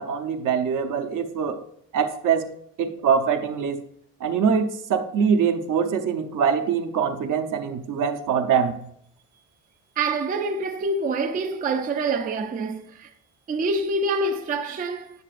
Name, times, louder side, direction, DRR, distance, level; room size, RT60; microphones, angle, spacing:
voice 1, 0.0-1.6 1.9-2.5 2.8-3.8 4.2-8.8, right 6 dB, 60° right, 0.8 m, -23 dB
voice 2, 10.0-13.1 13.5-15.2, right 3 dB, 25° right, 0.4 m, -26 dB
9.6 x 6.6 x 2.5 m
cardioid pair, 160°, 34 cm